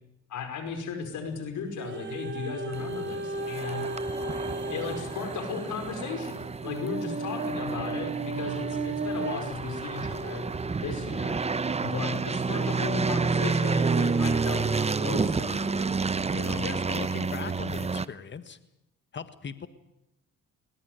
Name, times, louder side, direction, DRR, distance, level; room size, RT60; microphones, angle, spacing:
voice 1, 0.3-3.9 4.7-10.4 10.8-11.4 11.8-15.9 16.3-16.7, left 6 dB, 75° left, 6 dB, 5.2 m, -36 dB
sound 1, 1.8-10.9 11.5-11.6, right 3 dB, 40° right, 3.8 m, -35 dB
sound 2, 2.7-18.0, right 4 dB, 20° right, 0.8 m, -30 dB
voice 2, 16.6-18.6 19.1-19.7, left 6 dB, 40° left, 11 dB, 1.7 m, -39 dB
21.5 x 20.0 x 9.3 m, 0.86 s
cardioid pair, 90°, 30 cm